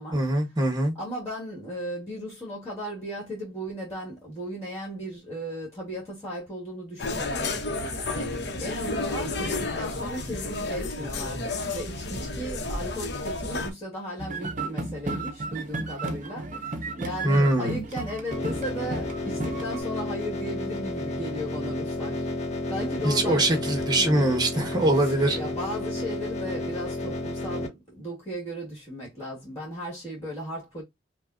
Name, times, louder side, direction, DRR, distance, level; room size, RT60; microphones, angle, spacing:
voice 1, 0.1-0.9 17.2-17.8 23.0-25.4, right 1 dB, 25° right, 1.2 m, -23 dB
voice 2, 0.9-24.1 25.0-30.8, equal, 15° left, 1.7 m, -36 dB
sound 1, 7.0-13.7, left 2 dB, 65° left, 0.9 m, -31 dB
sound 2, 14.2-19.8, right 2 dB, 45° right, 0.7 m, -34 dB
sound 3, 18.3-27.7, left 2 dB, 40° left, 0.9 m, -32 dB
5.4 x 2.2 x 2.5 m
head